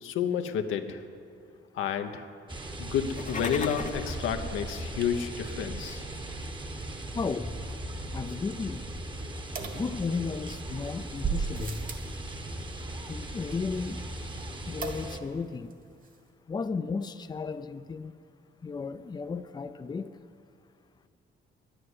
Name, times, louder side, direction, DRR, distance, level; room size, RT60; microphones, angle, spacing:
voice 1, 0.0-1.0 1.7-2.3 2.8-6.0, left 8 dB, 85° left, 6 dB, 0.9 m, -30 dB
sound 1, 2.5-15.2, right 1 dB, 25° right, 1.1 m, -38 dB
sound 2, 3.0-4.1, left 5 dB, 40° left, 0.9 m, -36 dB
voice 2, 7.1-7.6 8.1-8.9 9.7-11.9 13.1-14.0 14.7-15.7 16.5-18.1 18.6-20.1, left 4 dB, 20° left, 10 dB, 0.5 m, -34 dB
sound 3, 9.6-10.5 11.2-12.2 14.8-15.4 15.7-15.8 16.0-16.1, right 5 dB, 45° right, 1.7 m, -35 dB
11.0 x 9.9 x 9.7 m, 2.4 s
cardioid pair, 90°, 20 cm